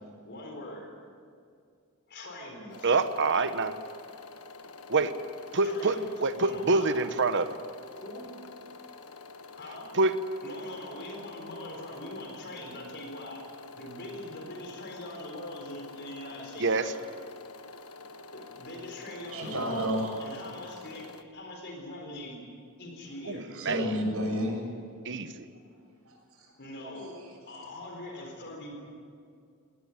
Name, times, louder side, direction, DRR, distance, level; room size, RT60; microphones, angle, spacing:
voice 1, 0.2-1.1 2.1-2.9 5.6-7.0 8.0-8.5 8.8-9.1 9.5-10.0 10.4-13.4 13.8-17.0 18.3-19.8 20.2-22.4 22.8-23.5 26.6-27.2 27.5-28.8, left 1 dB, 50° left, 2 dB, 4.2 m, -42 dB
sound 1, 2.7-21.2, left 3 dB, 85° left, 1.3 m, -48 dB
voice 2, 2.8-3.7 4.9-5.1 5.5-7.5 9.9-10.1 16.6-16.9 23.3-23.9 25.0-25.4, right 3 dB, 55° right, 11 dB, 1.1 m, -26 dB
voice 3, 19.3-20.1 23.5-24.6 26.1-26.5, equal, 75° right, 0 dB, 7.2 m, -31 dB
19.5 x 19.0 x 9.7 m, 2.3 s
head